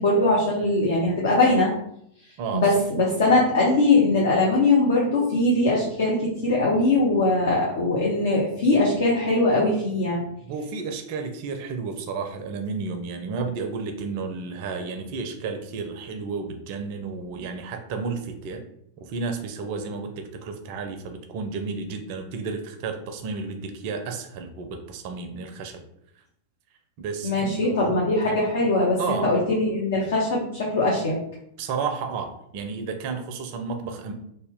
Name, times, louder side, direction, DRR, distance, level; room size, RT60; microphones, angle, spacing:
voice 1, 0.0-1.7 2.5-10.2 27.2-31.2, left 2 dB, 60° left, -3 dB, 0.7 m, -21 dB
voice 2, 2.4-2.7 10.4-18.6 19.0-25.8 27.0-28.0 28.3-28.4 29.0-29.3 31.6-34.1, right 4 dB, 45° right, 6 dB, 0.4 m, -32 dB
2.8 x 2.1 x 3.5 m, 0.73 s
figure-of-eight pair, 90°, 0 cm